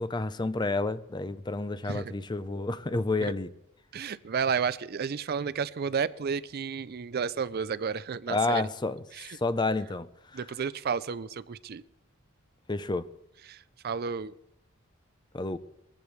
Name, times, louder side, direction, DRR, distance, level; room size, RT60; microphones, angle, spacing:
voice 1, 0.0-3.5 8.3-9.0 9.3-10.1 12.7-13.1 15.3-15.6, left 3 dB, 20° left, 0.5 m, -29 dB
voice 2, 3.9-8.6 9.1-9.4 10.3-11.8 13.5-14.3, right 6 dB, 45° right, 0.4 m, -32 dB
21.5 x 15.0 x 3.2 m
head